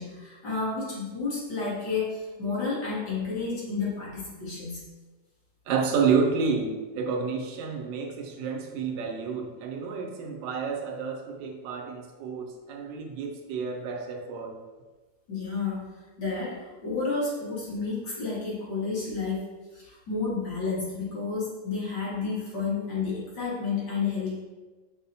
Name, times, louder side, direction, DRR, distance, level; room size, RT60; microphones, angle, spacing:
voice 1, 0.0-4.8 15.3-15.9 16.2-19.5 19.7-24.4, left 4 dB, 70° left, -7 dB, 1.7 m, -31 dB
voice 2, 5.7-14.6, right 5 dB, 90° right, 3 dB, 1.3 m, -29 dB
5.5 x 2.0 x 2.7 m, 1.3 s
omnidirectional pair, 1.9 m